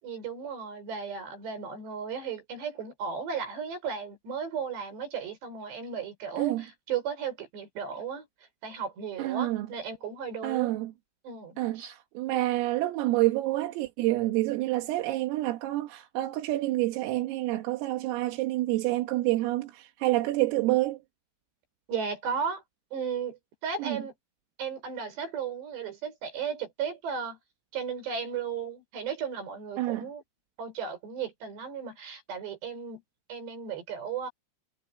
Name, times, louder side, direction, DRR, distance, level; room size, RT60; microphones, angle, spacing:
voice 1, 0.0-8.3 8.6-10.7 11.2-11.9 21.9-22.6 22.9-24.1 24.6-27.4 27.7-30.2 30.6-33.0 33.3-34.3, right 6 dB, 55° right, 7.8 m, -35 dB
voice 2, 9.2-9.7 10.4-10.9 11.6-21.0 23.9-24.0 29.8-30.1, right 17 dB, 85° right, 4.3 m, -28 dB
omnidirectional pair, 5.9 m